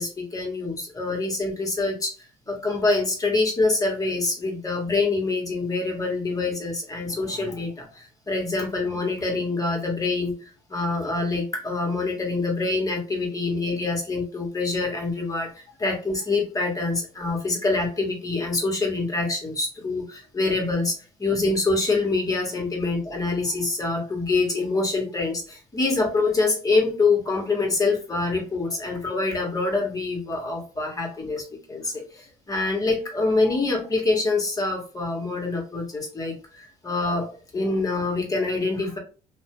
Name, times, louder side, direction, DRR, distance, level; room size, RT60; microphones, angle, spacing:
voice 1, 0.0-2.1 2.5-39.0, left 3 dB, 25° left, 0 dB, 1.1 m, -25 dB
2.6 x 2.1 x 2.9 m, 0.36 s
supercardioid pair, 80°, 15 cm